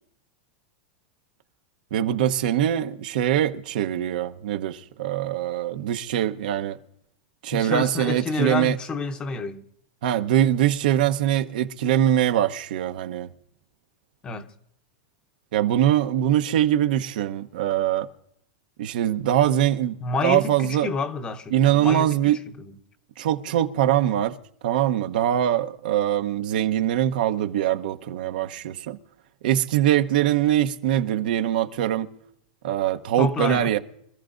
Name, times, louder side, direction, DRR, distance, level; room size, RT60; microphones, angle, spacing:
voice 1, 1.9-6.8 7.4-8.8 10.0-13.3 15.5-18.1 18.8-19.9 20.2-20.9 21.5-22.4 23.2-24.4 24.6-29.0 29.4-32.1 32.6-33.8, right 11 dB, 70° right, 0.9 m, -23 dB
voice 2, 7.5-9.6 14.2-14.5 20.0-22.4 33.2-33.7, left 4 dB, 20° left, 0.8 m, -29 dB
25.5 x 13.5 x 2.6 m
supercardioid pair, 155°, 5 cm